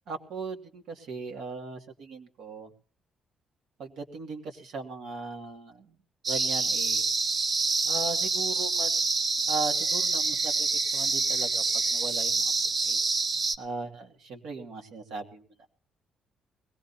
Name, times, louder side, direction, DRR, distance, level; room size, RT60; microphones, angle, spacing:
voice 1, 0.1-2.7 3.8-6.0 6.3-7.0 7.8-9.0 9.5-12.5 12.8-13.0 13.6-15.7, right 4 dB, 75° right, 3 dB, 2.4 m, -38 dB
sound 1, 6.2-13.5, right 3 dB, 45° right, 0.9 m, -27 dB
21.0 x 17.5 x 2.8 m, 0.43 s
cardioid pair, 90°, 0 cm